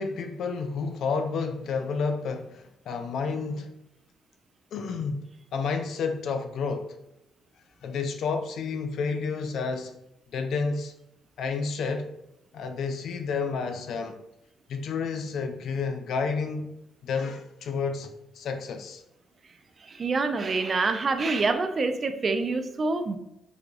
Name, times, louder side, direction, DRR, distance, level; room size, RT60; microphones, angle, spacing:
voice 1, 0.0-3.7 4.7-7.0 7.8-9.9 10.3-10.9 11.4-12.1 12.5-14.2 14.7-16.7 17.0-19.0, left 5 dB, 70° left, 6 dB, 0.4 m, -30 dB
voice 2, 19.9-23.2, right 3 dB, 45° right, 8 dB, 0.4 m, -26 dB
4.7 x 2.2 x 2.5 m, 0.85 s
supercardioid pair, 60°, 0 cm